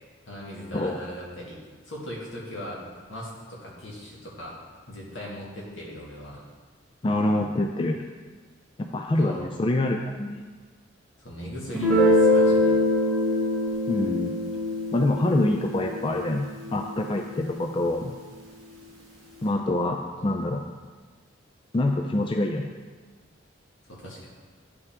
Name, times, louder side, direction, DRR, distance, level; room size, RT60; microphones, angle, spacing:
voice 1, 0.3-1.6 1.8-2.8 3.1-6.4 9.2-9.4 11.2-12.7 20.1-20.5 23.9-24.3, equal, 75° left, -4 dB, 2.0 m, -39 dB
voice 2, 7.0-8.0 8.8-10.4 13.9-14.3 14.9-18.2 19.4-20.6 21.7-22.7, left 1 dB, 25° left, 3 dB, 0.3 m, -25 dB
Guitar, 11.7-17.2, left 1 dB, ahead, 2.0 m, -24 dB
9.5 x 5.6 x 3.6 m, 1.4 s
head